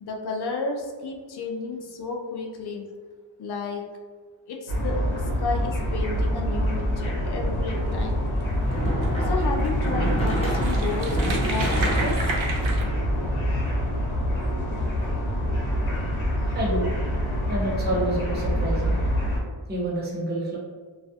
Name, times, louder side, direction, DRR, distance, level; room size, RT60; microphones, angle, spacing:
voice 1, 0.0-2.8 3.4-3.8 4.5-5.0 5.4-8.3 9.2-12.2, left 4 dB, 55° left, 1 dB, 0.5 m, -32 dB
sound 1, 4.7-19.4, equal, 75° left, 0.9 m, -26 dB
sound 2, 8.1-14.3, right 1 dB, 15° left, 0.8 m, -30 dB
sound 3, 8.9-9.1 9.7-9.8 10.0-12.8, right 3 dB, 75° right, 0.6 m, -32 dB
voice 2, 16.5-16.9 17.4-18.9 19.7-20.6, right 1 dB, 20° right, -4 dB, 0.6 m, -28 dB
2.3 x 2.1 x 2.7 m, 1.5 s
wide cardioid pair, 80°, 47 cm